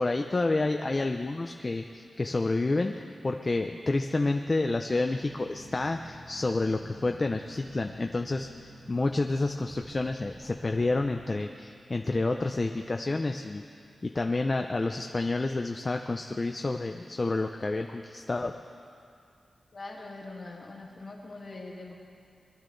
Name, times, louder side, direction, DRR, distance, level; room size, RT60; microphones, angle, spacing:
voice 1, 0.0-13.6 14.0-18.5, left 2 dB, 30° left, 4 dB, 0.4 m, -29 dB
sound 1, 5.1-11.2, equal, 70° right, 2.1 m, -50 dB
voice 2, 19.7-21.9, left 2 dB, 45° left, -1 dB, 2.0 m, -42 dB
21.5 x 12.0 x 3.9 m, 2.5 s
wide cardioid pair, 150°, 0 cm